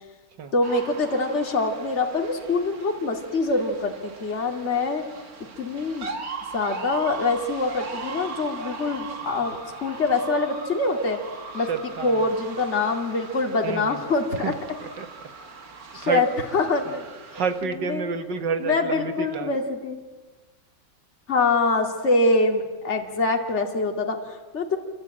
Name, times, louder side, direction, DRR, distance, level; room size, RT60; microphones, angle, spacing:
voice 1, 0.5-5.1 5.6-6.1 6.5-11.2 11.5-11.7 12.0-14.5 15.9-16.3 16.5-17.0 17.3-18.1 18.6-20.0 21.3-24.8, left 3 dB, 35° left, 3 dB, 2.6 m, -24 dB
sound 1, 0.6-17.6, right 4 dB, 50° right, 2.4 m, -39 dB
voice 2, 11.6-12.3 13.6-14.0 14.3-14.5 14.8-15.3 16.0-16.2 17.3-19.5, right 5 dB, 70° right, 9 dB, 2.3 m, -29 dB
28.0 x 24.0 x 8.9 m, 1.3 s
omnidirectional pair, 2.0 m